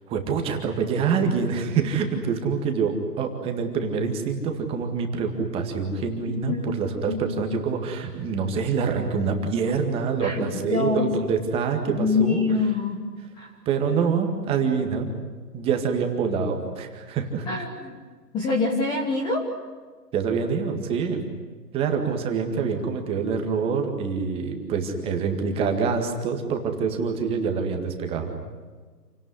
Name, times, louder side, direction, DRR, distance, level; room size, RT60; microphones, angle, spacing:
voice 1, 0.1-12.4 13.7-15.1 15.5-17.5 20.1-21.2 21.7-28.3, right 5 dB, 10° right, 4 dB, 1.9 m, -26 dB
voice 2, 6.3-6.8 7.1-7.4 10.2-11.1 11.9-13.0 13.4-13.5 17.5-18.0 18.3-19.4, left 4 dB, 10° left, 1 dB, 1.4 m, -25 dB
28.5 x 18.0 x 9.7 m, 1.5 s
hypercardioid pair, 150°, 49 cm